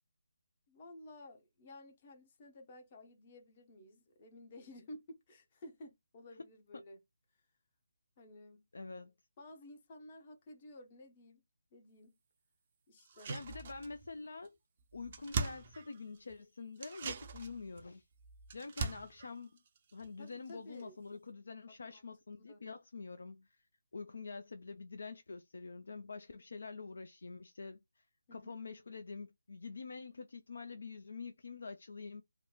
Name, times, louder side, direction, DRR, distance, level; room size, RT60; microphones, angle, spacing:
voice 1, 0.7-7.0 8.2-8.6 9.4-11.4 11.7-12.1 12.9-13.3 20.2-21.0 21.8-22.0 22.5-22.6 28.3-28.7, left 1 dB, 30° left, 0.7 m, -54 dB
voice 2, 8.7-9.1 13.3-14.5 14.9-18.0 18.5-19.5 19.9-23.6 23.9-28.0 28.3-32.2, left 4 dB, 60° left, 0.3 m, -46 dB
sound 1, 13.0-14.2 14.4-14.5 14.8-16.3 16.8-20.5 20.8-20.9, right 4 dB, 35° right, 0.4 m, -42 dB
2.9 x 2.1 x 2.2 m
figure-of-eight pair, 150°, 0 cm